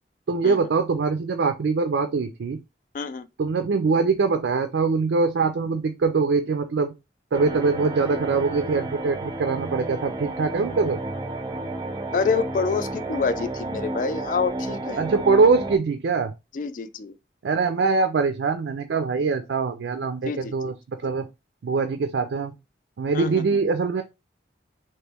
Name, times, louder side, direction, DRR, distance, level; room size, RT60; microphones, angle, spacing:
voice 1, 0.3-2.6 3.4-6.9 7.3-11.0 15.0-16.3 17.4-21.3 21.6-22.5 23.0-24.0, right 4 dB, 85° right, 0.4 m, -23 dB
voice 2, 2.9-3.3 12.1-15.0 16.5-17.2 20.2-20.7 23.1-23.6, left 5 dB, 45° left, 0.3 m, -27 dB
sound 1, 7.3-15.8, right 2 dB, 25° right, 0.5 m, -32 dB
3.0 x 3.0 x 3.4 m
head